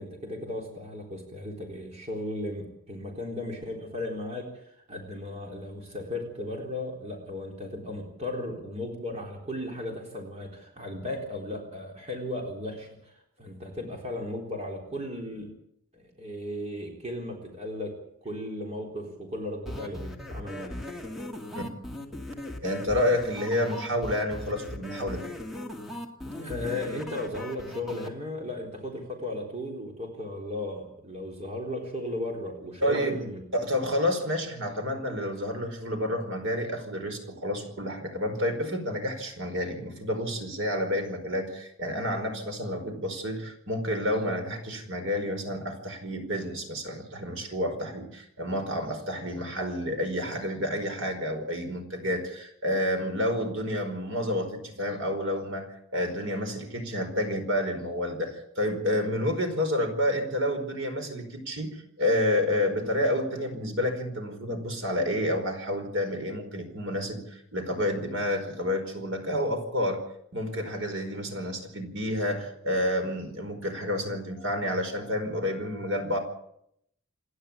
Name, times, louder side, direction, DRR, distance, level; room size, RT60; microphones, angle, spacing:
voice 1, 0.0-15.5 15.9-17.9 18.2-20.8 26.2-33.4, left 1 dB, 30° right, 1 dB, 3.9 m, -36 dB
sound 1, 19.7-28.1, left 1 dB, ahead, 2.3 m, -38 dB
voice 2, 22.6-25.3 32.8-33.2 33.5-70.0 70.3-76.2, left 1 dB, 60° right, 5 dB, 4.9 m, -29 dB
28.0 x 11.0 x 8.6 m, 0.73 s
head